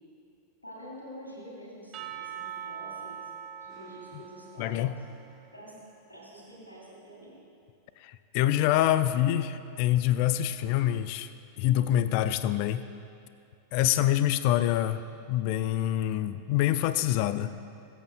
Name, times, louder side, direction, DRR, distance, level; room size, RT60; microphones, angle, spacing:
voice 1, 0.6-3.3 3.6-4.8 5.5-5.8 6.1-7.4, equal, 80° left, -6 dB, 2.5 m, -47 dB
Percussion / Church bell, 1.9-6.1, right 8 dB, 35° right, 0.6 m, -43 dB
voice 2, 4.6-4.9 8.0-11.3 11.6-12.8 13.7-15.0 15.3-17.5, left 12 dB, 45° left, 13 dB, 0.4 m, -26 dB
22.5 x 7.9 x 2.2 m, 2.6 s
figure-of-eight pair, 90°, 0 cm